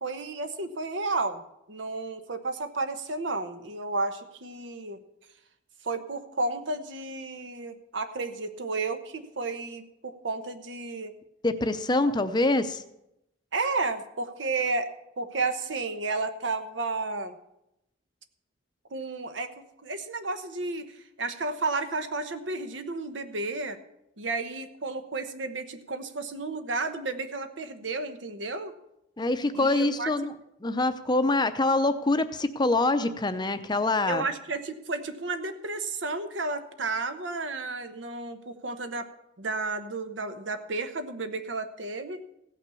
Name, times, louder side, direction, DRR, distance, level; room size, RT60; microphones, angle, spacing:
voice 1, 0.0-1.4 1.7-5.0 5.8-11.1 12.1-12.2 13.5-14.9 15.2-17.4 18.9-23.8 24.2-28.7 29.6-30.1 34.1-39.1 39.4-42.2, right 3 dB, 75° right, 9 dB, 1.0 m, -32 dB
voice 2, 11.4-12.8 29.2-30.3 30.6-34.2, left 2 dB, 25° left, 10 dB, 0.6 m, -25 dB
16.0 x 6.0 x 6.9 m, 0.84 s
head